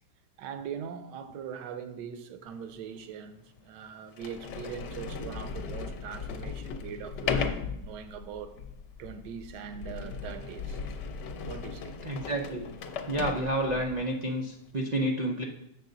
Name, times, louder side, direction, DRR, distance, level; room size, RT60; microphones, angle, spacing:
voice 1, 0.4-8.5 9.0-10.9 11.4-12.0, right 8 dB, 70° right, 1.3 m, -41 dB
Sliding door, 2.7-2.8 3.6-3.7 4.1-14.0, left 5 dB, 70° left, 1.3 m, -37 dB
voice 2, 12.0-12.7 13.1-15.4, right 1 dB, 90° right, 0.3 m, -30 dB
7.5 x 6.8 x 3.9 m
omnidirectional pair, 2.0 m